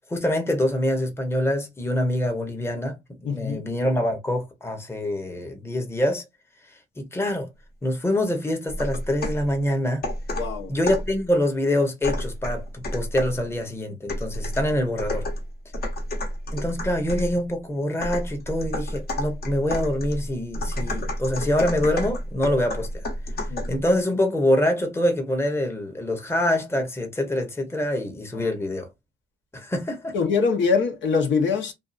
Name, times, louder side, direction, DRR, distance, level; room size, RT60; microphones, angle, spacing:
voice 1, 0.1-6.2 6.7-7.5 7.8-10.0 10.7-15.3 16.5-23.0 23.7-28.9 29.5-30.1, left 1 dB, 10° left, 0.9 m, -25 dB
voice 2, 3.2-3.6 10.3-10.7 23.5-23.7 28.3-28.4 30.1-31.7, left 5 dB, 70° left, 1.0 m, -23 dB
sound 1, 8.7-9.5 10.0-11.2 12.0-13.4 14.1-17.3 18.0-23.8, left 1 dB, 50° left, 1.2 m, -30 dB
2.6 x 2.4 x 2.4 m
cardioid pair, 90°, 20 cm